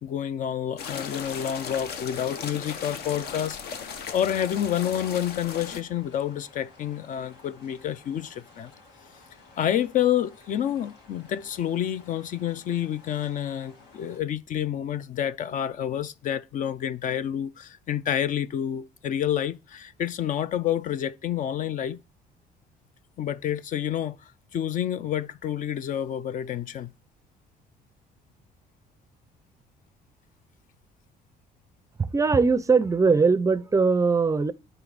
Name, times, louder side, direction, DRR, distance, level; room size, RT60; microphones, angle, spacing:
voice 1, 0.0-3.6 4.1-8.7 9.6-22.0 23.2-26.9, left 10 dB, 50° left, 0.4 m, -29 dB
sound 1, 0.8-14.2, left 3 dB, 90° left, 2.1 m, -54 dB
sound 2, 0.8-5.8, left 6 dB, 70° left, 0.9 m, -37 dB
voice 2, 32.0-34.5, right 4 dB, 20° right, 0.4 m, -21 dB
9.2 x 3.4 x 3.9 m
cardioid pair, 110°, 17 cm